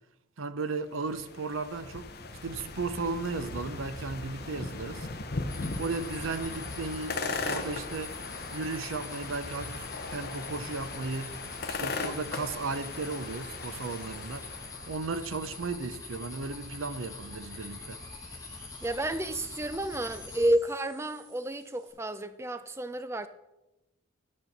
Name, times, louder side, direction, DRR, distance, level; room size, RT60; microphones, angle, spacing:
voice 1, 0.4-2.1 2.4-5.1 5.8-8.1 8.5-11.3 11.8-14.5 14.9-18.0, right 4 dB, 80° right, 0.7 m, -35 dB
sound 1, 0.9-15.0, left 3 dB, 50° left, 0.8 m, -38 dB
sound 2, 5.5-20.5, left 3 dB, 15° left, 1.1 m, -44 dB
sound 3, 10.6-21.9, right 3 dB, 65° right, 2.5 m, -59 dB
voice 2, 18.8-23.3, right 1 dB, 15° right, 0.4 m, -30 dB
11.0 x 4.4 x 6.5 m
head